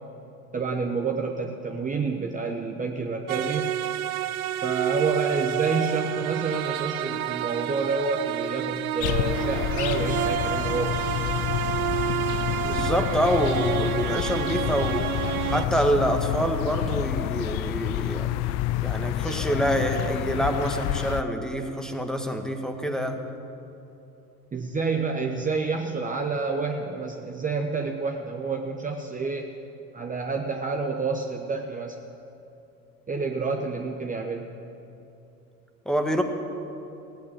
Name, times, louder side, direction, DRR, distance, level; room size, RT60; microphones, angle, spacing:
voice 1, 0.5-3.7 4.6-11.3 24.5-29.5 29.9-32.0 33.1-34.5, right 4 dB, 20° right, 2 dB, 1.0 m, -29 dB
sound 1, 3.3-15.7, right 12 dB, 75° right, 0.7 m, -29 dB
sound 2, 9.0-21.2, left 14 dB, 40° left, 0.4 m, -28 dB
voice 2, 12.6-15.1 15.5-18.3 18.8-23.2 35.8-36.2, right 1 dB, ahead, 5 dB, 1.5 m, -26 dB
16.5 x 9.2 x 9.0 m, 2.9 s
hypercardioid pair, 80°, 44 cm